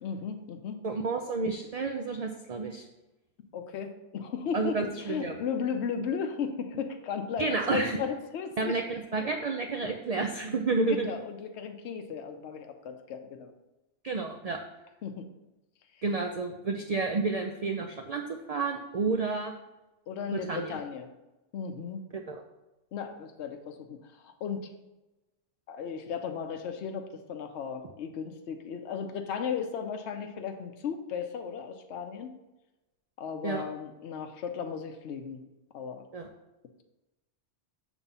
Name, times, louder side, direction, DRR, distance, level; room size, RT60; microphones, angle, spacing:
voice 1, 0.0-0.8 3.5-9.3 9.8-10.0 10.9-13.5 15.0-15.3 15.9-16.0 20.1-21.1 21.5-22.0 22.9-24.7 25.7-32.3 33.2-35.4 35.7-36.1, left 6 dB, 70° left, 5 dB, 0.9 m, -35 dB
voice 2, 0.8-2.8 4.5-5.3 7.4-8.0 8.6-11.1 14.0-14.6 16.0-19.5 20.3-20.8 22.1-22.4 33.4-33.6 36.1-36.3, right 3 dB, 55° right, 4 dB, 0.4 m, -30 dB
7.1 x 3.5 x 5.5 m, 1.0 s
omnidirectional pair, 1.3 m